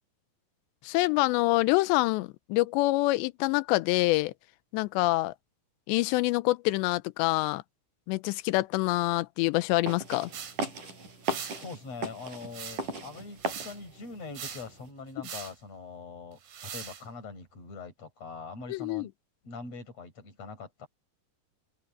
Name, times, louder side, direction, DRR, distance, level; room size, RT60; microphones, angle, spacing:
voice 1, 0.8-4.3 4.7-5.3 5.9-7.6 8.1-10.3 18.7-19.1, left 20 dB, 85° left, 2.8 m, -26 dB
sound 1, 9.9-14.9, right 2 dB, 45° right, 9.2 m, -37 dB
sound 2, 10.3-10.6 11.2-11.6 12.5-13.0 13.4-13.8 14.4-14.7 15.2-15.6 16.4-17.0, right 7 dB, 65° right, 5.4 m, -40 dB
voice 2, 11.6-19.1 19.4-20.9, left 4 dB, 35° left, 7.2 m, -43 dB
open air
omnidirectional pair, 5.1 m